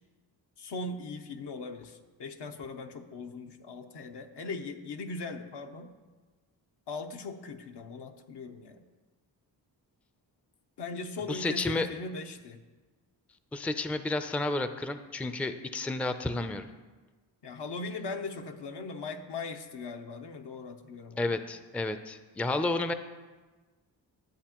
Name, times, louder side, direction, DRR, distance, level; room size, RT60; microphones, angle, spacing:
voice 1, 0.6-5.9 6.9-8.8 10.8-12.6 17.4-21.3, left 3 dB, 70° left, 4 dB, 0.9 m, -39 dB
voice 2, 11.3-11.9 13.5-16.7 21.2-22.9, left 2 dB, 5° left, 9 dB, 0.4 m, -31 dB
11.5 x 8.0 x 3.0 m, 1.3 s
cardioid pair, 55°, 43 cm